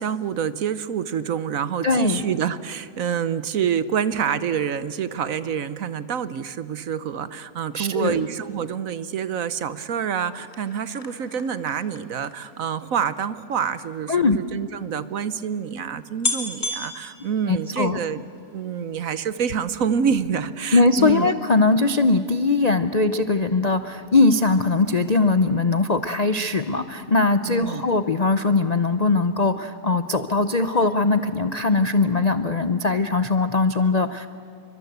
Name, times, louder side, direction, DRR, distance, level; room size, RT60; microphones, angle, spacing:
voice 1, 0.0-18.2 18.5-21.3 27.5-27.9, right 7 dB, 60° right, 14 dB, 1.2 m, -27 dB
voice 2, 1.8-2.2 7.7-8.2 14.1-14.4 17.5-18.0 20.7-34.3, left 3 dB, 45° left, 10 dB, 0.5 m, -20 dB
sound 1, 10.3-13.9 14.7-14.8 15.0-15.1 15.7-15.8 16.2-18.1 18.5-18.9 19.2-19.3, left 2 dB, 25° left, 3.0 m, -33 dB
29.0 x 24.0 x 8.1 m, 2.5 s
omnidirectional pair, 1.7 m